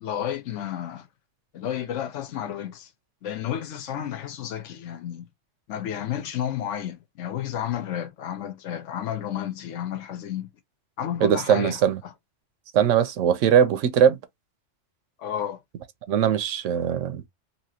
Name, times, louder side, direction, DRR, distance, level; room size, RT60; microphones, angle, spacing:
voice 1, 0.0-1.1 1.5-2.9 3.2-5.3 5.7-10.5 11.0-12.1 15.2-15.6, left 10 dB, 80° left, 1.0 m, -31 dB
voice 2, 11.2-12.0 12.7-14.2 16.1-17.2, right 8 dB, 85° right, 0.9 m, -20 dB
2.9 x 2.9 x 2.8 m
omnidirectional pair, 1.3 m